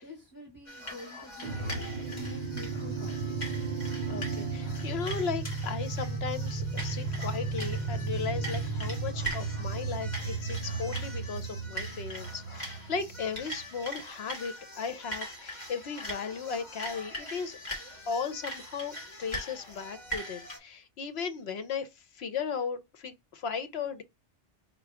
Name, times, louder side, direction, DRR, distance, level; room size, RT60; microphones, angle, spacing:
voice 1, 0.0-3.4, left 2 dB, 20° left, 1.1 m, -48 dB
sound 1, 0.7-20.6, right 1 dB, 35° left, 1.9 m, -42 dB
sound 2, 1.4-13.6, right 4 dB, 50° right, 0.5 m, -34 dB
voice 2, 4.1-17.6 18.1-21.9 22.1-24.0, left 5 dB, 65° left, 0.8 m, -36 dB
4.5 x 2.2 x 4.6 m
omnidirectional pair, 1.2 m